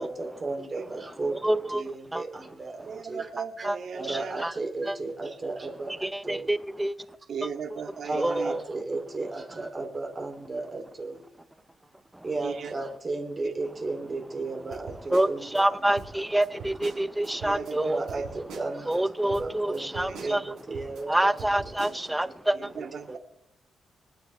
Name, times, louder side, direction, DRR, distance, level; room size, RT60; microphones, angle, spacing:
voice 1, 0.0-3.3 3.6-3.7 4.0-6.5 8.1-11.2 12.2-15.6 16.1-16.2 17.7-18.9 19.3-21.3 21.8-21.9 22.2-22.6 23.1-23.2, right 3 dB, 25° right, 2.8 m, -34 dB
voice 2, 1.3-1.8 2.1-2.2 3.6-3.8 4.0-4.5 4.9-5.0 6.0-7.0 8.1-8.6 12.1-12.3 15.1-18.0 18.9-20.5 21.1-22.7, right 1 dB, 5° right, 0.6 m, -27 dB
voice 3, 2.9-4.4 7.3-8.6 12.4-12.7 13.4-13.5 14.7-14.8 17.4-18.4 20.0-20.4 22.5-23.2, right 6 dB, 60° right, 2.3 m, -37 dB
sound 1, 14.7-15.6 16.0-17.7 18.1-19.0 19.3-21.0 21.4-22.0, right 5 dB, 90° right, 4.3 m, -43 dB
25.5 x 10.5 x 3.3 m
cardioid pair, 135°, 0 cm